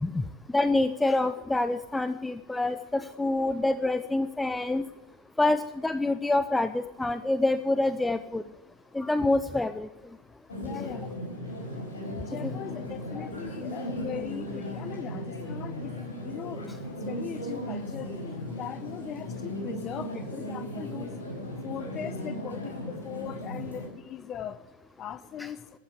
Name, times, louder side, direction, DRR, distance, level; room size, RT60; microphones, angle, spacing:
voice 1, 0.5-4.8 5.4-8.4 8.9-9.9 12.4-12.5 13.2-13.3 25.4-25.5, left 2 dB, 5° left, 12 dB, 0.5 m, -26 dB
sound 1, 10.5-23.9, equal, 70° left, 4.3 m, -36 dB
voice 2, 10.6-11.1 12.2-16.0 16.2-16.7 17.0-18.1 18.6-21.1 21.6-24.6 25.0-25.6, left 9 dB, 30° left, 14 dB, 0.9 m, -39 dB
15.0 x 8.7 x 8.1 m, 1.0 s
figure-of-eight pair, 90°, 0 cm